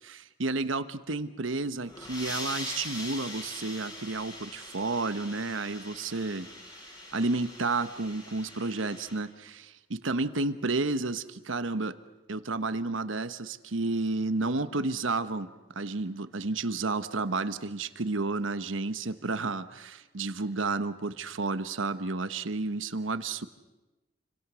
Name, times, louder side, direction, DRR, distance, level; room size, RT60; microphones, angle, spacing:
voice 1, 0.0-6.5 7.1-12.0 12.3-15.5 15.7-23.5, right 3 dB, 75° right, 12 dB, 1.1 m, -31 dB
sound 1, 1.7-9.2, left 1 dB, 20° left, 7.8 m, -42 dB
28.5 x 25.5 x 6.3 m, 1.1 s
head